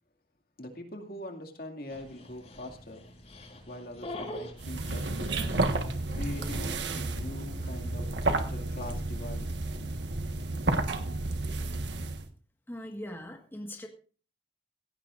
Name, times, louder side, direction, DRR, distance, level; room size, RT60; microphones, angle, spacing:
voice 1, 0.6-3.0 3.7-5.6 6.1-9.5, left 1 dB, 55° left, 3 dB, 2.3 m, -42 dB
Dog, 1.9-6.9, left 1 dB, 40° left, 4.5 m, -45 dB
sound 1, 4.6-12.3, right 2 dB, 85° right, 1.5 m, -31 dB
voice 2, 12.7-13.9, left 1 dB, 15° left, 2 dB, 1.6 m, -40 dB
17.0 x 16.0 x 2.6 m, 0.40 s
head